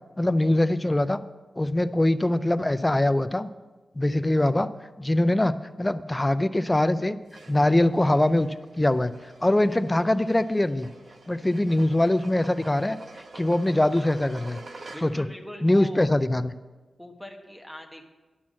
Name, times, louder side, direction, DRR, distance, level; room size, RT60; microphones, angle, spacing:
voice 1, 0.2-1.2 1.6-3.5 4.0-4.7 5.0-7.2 7.5-8.5 8.8-9.1 9.4-10.9 11.3-13.0 13.4-14.6 15.0-15.3 15.6-16.5, left 1 dB, 15° left, 13 dB, 0.5 m, -22 dB
sound 1, 7.3-15.4, right 2 dB, 55° right, 1.0 m, -47 dB
voice 2, 14.9-16.1 17.0-18.0, left 1 dB, ahead, 2 dB, 1.3 m, -42 dB
11.0 x 5.9 x 7.5 m, 1.2 s
wide cardioid pair, 95°, 0 cm